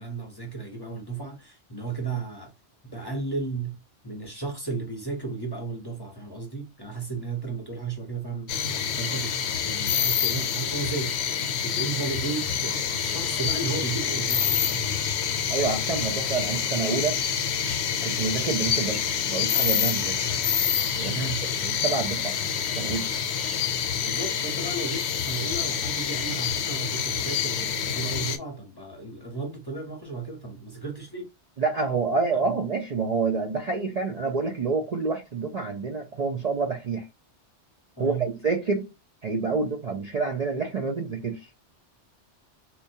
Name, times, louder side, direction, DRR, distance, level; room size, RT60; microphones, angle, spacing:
voice 1, 0.0-2.5 2.8-8.6 9.0-9.4 9.6-11.3 11.6-15.0 21.1-21.4 24.0-31.3 32.3-32.6 38.0-38.3, right 4 dB, 25° left, 0.7 m, -34 dB
sound 1, 8.5-28.4, left 8 dB, 75° left, 0.8 m, -27 dB
sound 2, 11.9-26.0, right 1 dB, 20° right, 1.1 m, -47 dB
voice 2, 15.5-17.2 18.0-20.2 21.0-21.1 21.6-22.3 22.8-23.1 31.6-37.1 38.0-38.9 39.2-41.5, right 4 dB, 50° right, 0.5 m, -28 dB
4.3 x 2.3 x 2.7 m
omnidirectional pair, 1.2 m